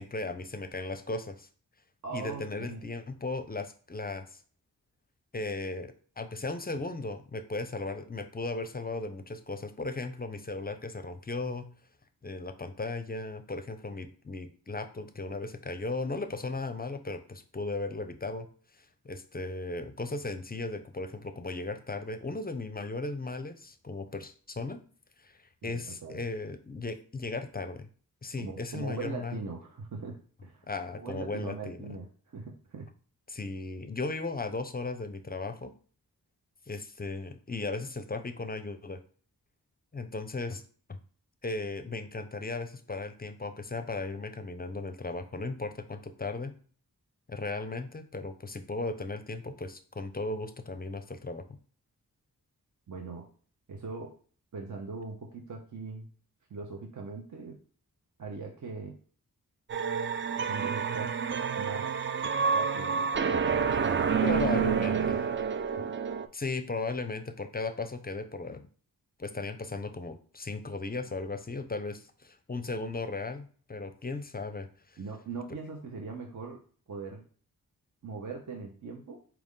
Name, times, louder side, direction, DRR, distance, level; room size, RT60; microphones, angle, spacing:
voice 1, 0.0-1.5 2.1-4.4 5.3-11.7 12.2-18.5 18.8-24.8 25.2-25.4 25.6-27.9 28.2-29.4 30.7-31.9 33.3-35.7 36.7-39.0 39.9-40.6 40.9-41.0 41.4-46.5 47.3-51.6 64.2-65.2 66.3-68.7 69.2-75.0, left 3 dB, 25° left, 9 dB, 0.5 m, -36 dB
voice 2, 2.0-2.8 25.6-26.2 28.4-30.7 30.9-32.1 32.3-32.9 52.9-53.3 53.7-54.1 54.5-56.1 56.5-57.6 58.2-58.9 60.5-61.1 61.6-61.9 62.5-63.1 64.0-65.1 65.8-65.9 75.0-76.6 76.9-77.2 78.0-79.2, right 4 dB, 55° right, 1 dB, 0.7 m, -40 dB
sound 1, 59.7-66.3, right 6 dB, 35° right, 0.4 m, -28 dB
4.6 x 2.4 x 3.6 m, 0.43 s
cardioid pair, 45°, 37 cm